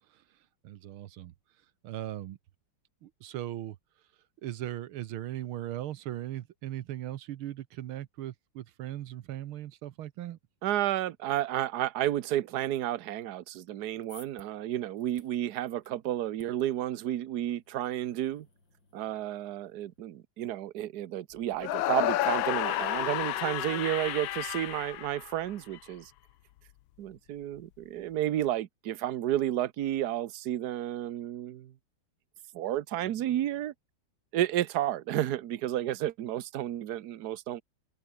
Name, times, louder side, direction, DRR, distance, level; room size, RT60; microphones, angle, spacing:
voice 1, 0.6-1.3 1.8-2.4 3.0-3.8 4.4-10.4, right 13 dB, 75° right, 1.7 m, -38 dB
voice 2, 10.6-18.5 18.9-26.1 27.0-31.7 32.5-33.7 34.3-37.6, right 12 dB, 60° right, 1.2 m, -31 dB
sound 1, 13.7-20.0, left 2 dB, 55° left, 8.0 m, -61 dB
sound 2, 21.6-25.8, left 14 dB, 70° left, 1.4 m, -31 dB
omnidirectional pair, 2.4 m